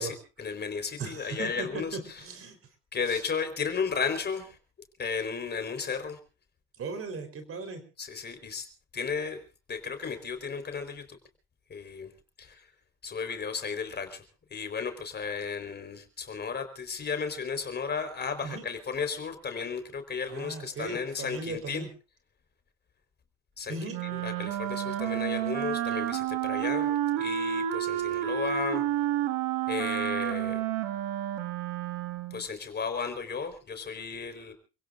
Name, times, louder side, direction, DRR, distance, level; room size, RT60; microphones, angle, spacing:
voice 1, 0.0-2.2 2.9-4.6 5.0-6.2 8.0-8.7 8.9-9.4 9.7-11.1 11.7-12.1 12.4-12.7 13.0-14.2 14.5-21.9 23.6-23.8 24.0-28.8 29.7-30.6 32.3-34.5, left 5 dB, 35° left, 7 dB, 4.3 m, -34 dB
voice 2, 1.0-2.6 3.1-3.2 6.8-7.8 18.4-18.6 20.3-21.9 23.7-24.0, right 4 dB, 45° right, 7 dB, 4.1 m, -37 dB
Wind instrument woodwind instrument, 23.9-32.4, right 11 dB, 85° right, 2.0 m, -30 dB
29.0 x 17.0 x 2.6 m, 0.33 s
supercardioid pair, 90°, 31 cm